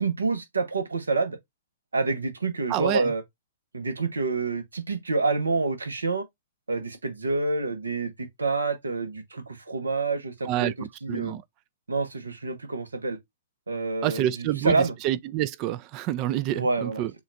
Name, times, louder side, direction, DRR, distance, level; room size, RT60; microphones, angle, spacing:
voice 1, 0.0-1.4 1.9-3.2 3.7-6.2 6.7-11.4 11.9-13.2 13.7-14.9 16.5-17.0, right 3 dB, 80° right, 0.9 m, -27 dB
voice 2, 2.7-3.1 10.5-10.7 11.1-11.4 14.0-14.8 15.0-17.1, right 13 dB, 35° right, 0.3 m, -27 dB
7.0 x 2.4 x 2.5 m
figure-of-eight pair, 115°, 0 cm